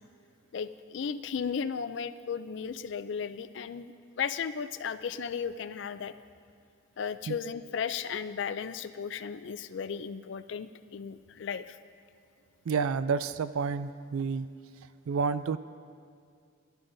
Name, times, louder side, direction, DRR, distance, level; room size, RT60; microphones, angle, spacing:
voice 1, 0.5-6.1 7.0-11.8, left 6 dB, 60° left, 13 dB, 0.3 m, -35 dB
voice 2, 12.7-14.5 15.1-15.6, right 5 dB, 85° right, 14 dB, 0.4 m, -29 dB
16.5 x 12.0 x 2.6 m, 2.3 s
head